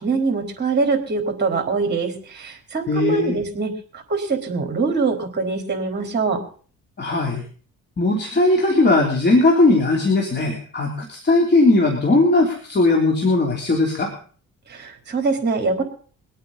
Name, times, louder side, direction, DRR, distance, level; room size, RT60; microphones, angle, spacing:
voice 1, 0.0-6.4 14.7-15.8, right 4 dB, 35° right, 4 dB, 4.0 m, -23 dB
voice 2, 2.9-3.4 7.0-7.4 8.0-14.1, left 2 dB, 35° left, 0 dB, 3.4 m, -18 dB
23.5 x 8.9 x 4.1 m, 0.42 s
cardioid pair, 90°, 30 cm